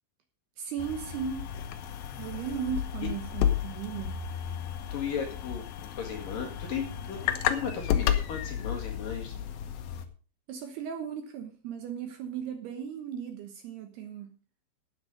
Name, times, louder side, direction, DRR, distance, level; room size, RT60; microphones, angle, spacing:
voice 1, 0.6-1.5 2.2-4.2 10.5-14.3, right 7 dB, 70° right, 2.7 m, -36 dB
sound 1, 0.8-10.1, left 10 dB, 75° left, 2.2 m, -32 dB
voice 2, 4.9-9.5, left 7 dB, 55° left, 3.0 m, -36 dB
12.5 x 9.6 x 5.1 m
omnidirectional pair, 5.6 m